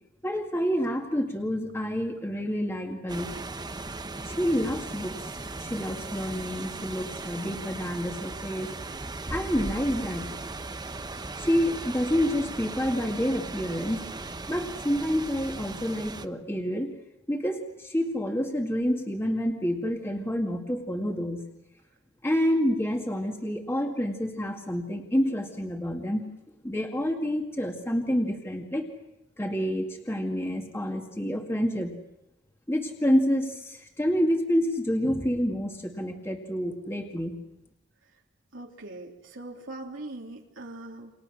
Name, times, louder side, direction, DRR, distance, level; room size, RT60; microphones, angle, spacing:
voice 1, 0.2-3.3 4.3-5.2 5.6-8.7 9.3-10.3 11.4-14.0 14.5-16.9 17.3-21.4 22.2-26.2 26.6-28.9 29.4-32.0 32.7-37.4, equal, 15° left, 2 dB, 2.2 m, -28 dB
sound 1, 3.1-16.3, right 2 dB, 20° right, 1.0 m, -37 dB
voice 2, 38.5-41.1, right 2 dB, 85° right, 0 dB, 3.3 m, -41 dB
30.0 x 27.0 x 6.3 m, 0.90 s
head